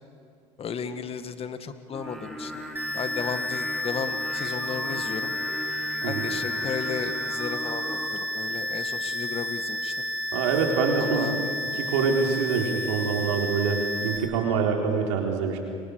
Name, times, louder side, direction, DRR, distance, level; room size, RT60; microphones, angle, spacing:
voice 1, 0.6-2.6 2.9-5.3 6.0-10.0 11.0-11.6, left 6 dB, 40° left, 9 dB, 1.9 m, -34 dB
Singing, 1.9-8.1, right 1 dB, ahead, 4.8 m, -38 dB
sound 1, 2.8-14.2, left 1 dB, 15° right, 6.3 m, -31 dB
voice 2, 10.3-11.3 11.7-15.6, right 5 dB, 85° right, 1 dB, 4.1 m, -25 dB
29.0 x 24.0 x 6.8 m, 2.4 s
supercardioid pair, 80°, 15 cm